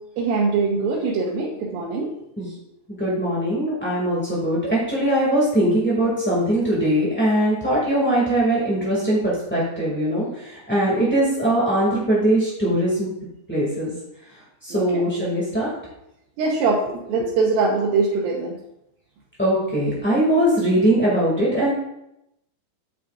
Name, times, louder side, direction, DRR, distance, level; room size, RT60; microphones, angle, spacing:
voice 1, 0.2-2.1 14.7-15.0 16.4-18.5, right 4 dB, 80° right, -3 dB, 2.7 m, -22 dB
voice 2, 3.0-13.1 13.5-13.9 14.6-15.7 17.2-17.3 19.4-21.7, right 1 dB, 5° left, -7 dB, 0.8 m, -21 dB
9.0 x 8.5 x 2.4 m, 0.83 s
omnidirectional pair, 4.2 m